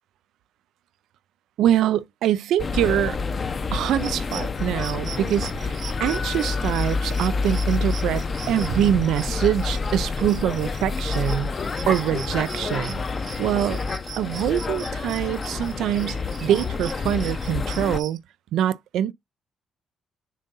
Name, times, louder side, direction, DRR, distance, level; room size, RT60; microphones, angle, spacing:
voice 1, 1.6-3.2 3.7-11.5 11.9-13.0 13.4-13.8 14.2-18.2 18.5-19.1, right 11 dB, 80° right, 0.4 m, -24 dB
sound 1, 2.6-18.0, left 4 dB, 40° left, 0.7 m, -28 dB
sound 2, 3.9-18.2, right 7 dB, 65° right, 1.2 m, -41 dB
Keyboard (musical), 5.9-7.9 11.2-11.3, left 4 dB, 75° left, 2.5 m, -39 dB
7.3 x 2.7 x 5.4 m
cardioid pair, 90°, 0 cm